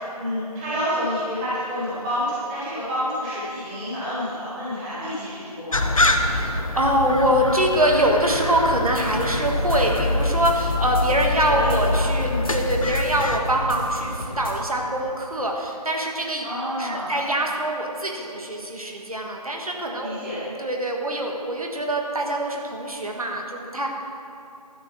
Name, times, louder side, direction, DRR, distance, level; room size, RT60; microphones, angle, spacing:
voice 1, 0.0-6.1 11.2-11.7 12.2-12.4 16.4-17.1 20.0-20.4, equal, 5° right, -11 dB, 1.6 m, -29 dB
sound 1, 5.7-13.4, left 2 dB, 55° left, 0.9 m, -25 dB
voice 2, 6.2-16.4 16.8-23.9, right 1 dB, 60° right, 1 dB, 1.6 m, -24 dB
sound 2, 8.9-14.5, left 1 dB, 35° left, 1.4 m, -34 dB
12.0 x 7.1 x 6.3 m, 2.7 s
figure-of-eight pair, 160°, 20 cm